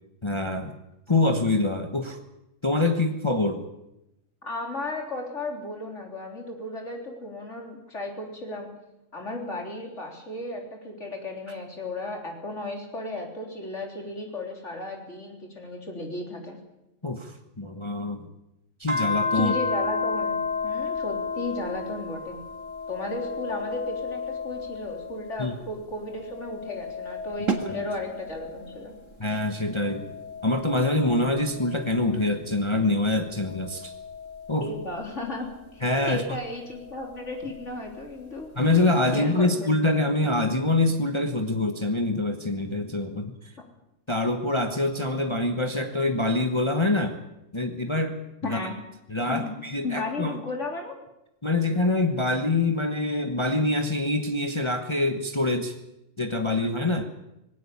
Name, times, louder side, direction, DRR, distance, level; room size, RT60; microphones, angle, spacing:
voice 1, 0.2-0.7 1.1-2.2 2.6-3.7 17.0-18.3 18.8-19.5 25.4-25.5 27.7-27.8 29.2-30.0 30.4-33.9 34.5-34.7 35.8-36.2 38.6-43.3 44.1-47.2 47.5-48.2 48.4-48.6 49.1-50.4 51.4-55.8 56.2-57.0, left 2 dB, 25° left, 5 dB, 1.3 m, -25 dB
voice 2, 4.4-8.7 9.1-16.6 19.3-22.4 22.9-28.9 34.6-35.5 35.7-38.5 39.1-39.7 48.4-48.8 49.3-49.5 49.8-51.0, left 2 dB, 65° left, 1 dB, 4.0 m, -34 dB
sound 1, 18.9-25.6 26.0-28.9 29.5-32.3 33.1-35.5 36.9-37.9, left 4 dB, 40° right, 2.6 m, -33 dB
sound 2, 27.5-33.2, right 6 dB, 80° right, 2.2 m, -37 dB
20.0 x 16.5 x 8.6 m, 0.89 s
omnidirectional pair, 1.3 m